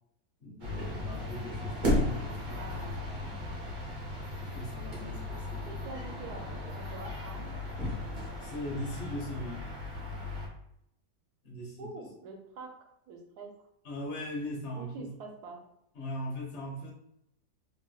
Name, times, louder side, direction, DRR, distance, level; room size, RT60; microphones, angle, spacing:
voice 1, 0.4-3.4 4.4-5.7 8.4-9.7 11.4-12.0 13.8-15.1 15.9-16.9, left 1 dB, 50° left, -2 dB, 1.0 m, -40 dB
sound 1, 0.6-10.5, left 1 dB, 50° right, 0.6 m, -35 dB
voice 2, 2.5-3.0 5.6-7.5 11.8-13.6 14.8-15.6, right 3 dB, 75° right, 2 dB, 1.2 m, -45 dB
3.2 x 3.0 x 2.3 m, 0.78 s
omnidirectional pair, 1.8 m